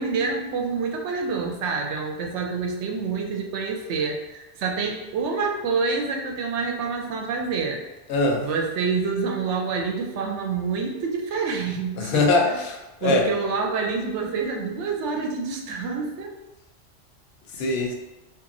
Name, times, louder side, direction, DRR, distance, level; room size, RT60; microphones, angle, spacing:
voice 1, 0.0-7.8 8.4-12.6 13.0-16.3, right 4 dB, 85° right, 1 dB, 0.9 m, -27 dB
voice 2, 8.1-8.5 12.0-13.3 17.6-17.9, left 3 dB, 65° left, 2 dB, 0.8 m, -22 dB
2.9 x 2.5 x 2.6 m, 1.0 s
omnidirectional pair, 1.2 m